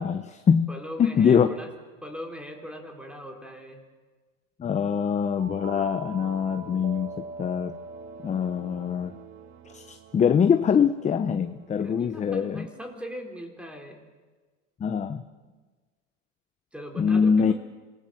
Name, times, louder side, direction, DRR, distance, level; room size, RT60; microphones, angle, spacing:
voice 1, 0.0-1.5 4.6-7.7 8.2-9.1 9.7-12.7 14.8-15.2 17.0-17.5, left 7 dB, 20° left, 10 dB, 0.8 m, -23 dB
voice 2, 0.7-1.7 2.0-3.8 11.7-14.0 15.4-15.5 16.7-17.5, equal, 5° right, 3 dB, 4.1 m, -40 dB
sound 1, 5.4-11.9, right 4 dB, 65° right, 2.5 m, -43 dB
26.5 x 19.5 x 7.8 m, 1.3 s
supercardioid pair, 130°, 38 cm